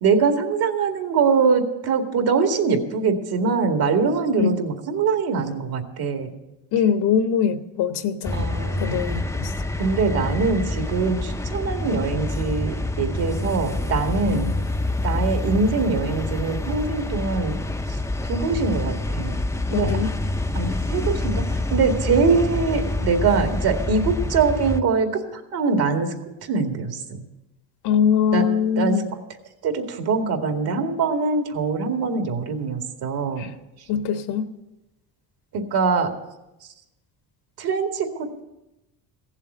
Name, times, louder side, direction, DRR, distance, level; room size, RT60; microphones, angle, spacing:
voice 1, 0.0-6.3 8.3-9.1 9.8-14.5 15.0-17.6 17.9-18.0 18.2-19.4 19.7-20.1 20.5-21.4 21.7-26.1 26.4-27.2 28.3-28.5 28.8-29.0 29.6-33.5 35.5-36.1 37.6-38.4, right 4 dB, 65° right, 4 dB, 2.2 m, -23 dB
voice 2, 6.7-8.4 8.8-9.5 14.3-14.5 19.7-20.1 27.8-29.1 33.4-33.5 33.9-34.5, left 7 dB, 75° left, 8 dB, 1.3 m, -22 dB
sound 1, 8.2-24.8, left 2 dB, 5° left, 0.5 m, -27 dB
15.5 x 7.4 x 8.1 m, 0.96 s
cardioid pair, 110°, 40 cm